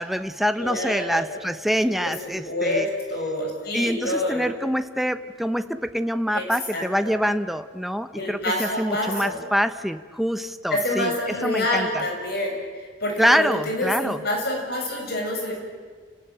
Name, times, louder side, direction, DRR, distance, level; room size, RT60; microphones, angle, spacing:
voice 1, 0.0-2.9 3.7-11.1 11.4-12.0 13.2-14.2, equal, ahead, 10 dB, 0.9 m, -25 dB
voice 2, 0.6-1.3 1.9-2.1 2.5-4.5 6.3-6.5 6.7-7.2 8.1-9.4 10.7-12.6 13.0-15.5, left 1 dB, 60° left, 1 dB, 7.2 m, -27 dB
29.5 x 19.0 x 9.1 m, 1.5 s
head